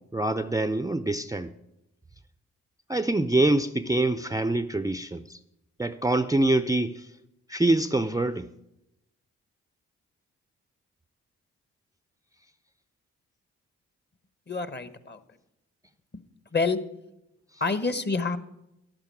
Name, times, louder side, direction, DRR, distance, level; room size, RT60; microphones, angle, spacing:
voice 1, 0.1-1.5 2.9-5.4 5.8-7.1 7.5-8.5, right 2 dB, 10° right, 12 dB, 0.5 m, -25 dB
voice 2, 14.5-15.2 16.5-16.8 17.6-18.4, left 4 dB, 30° left, 13 dB, 1.1 m, -27 dB
11.5 x 8.8 x 6.3 m, 0.88 s
hypercardioid pair, 40°, 33 cm